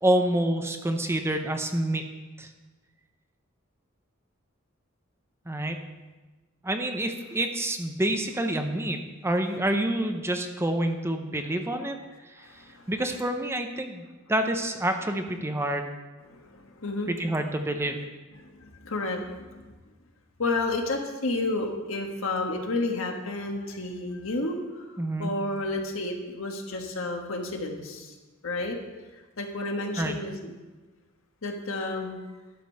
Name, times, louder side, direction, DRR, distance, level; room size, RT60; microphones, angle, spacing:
voice 1, 0.0-2.0 2.4-2.5 5.5-5.8 6.6-12.0 12.3-12.5 12.9-14.0 14.3-15.9 17.1-18.0 25.0-25.3 30.0-30.2, right 1 dB, 10° right, 5 dB, 0.7 m, -27 dB
voice 2, 12.4-12.9 16.3-17.1 18.4-19.7 20.4-24.9 25.2-28.1 28.4-28.8 29.4-30.5 31.4-32.2, left 2 dB, 75° left, 2 dB, 1.5 m, -31 dB
12.0 x 5.2 x 6.5 m, 1.2 s
head